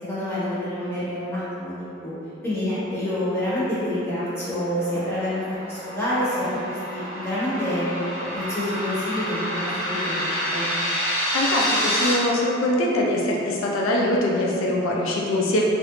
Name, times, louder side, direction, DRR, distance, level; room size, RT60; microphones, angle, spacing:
voice 1, 0.0-2.1 2.4-7.8 8.3-10.7, left 1 dB, 15° left, -12 dB, 1.1 m, -27 dB
sound 1, 4.4-12.1, equal, 50° left, 0.9 m, -28 dB
voice 2, 11.3-15.6, left 1 dB, 80° left, -2 dB, 0.4 m, -23 dB
3.2 x 2.5 x 3.1 m, 2.8 s
head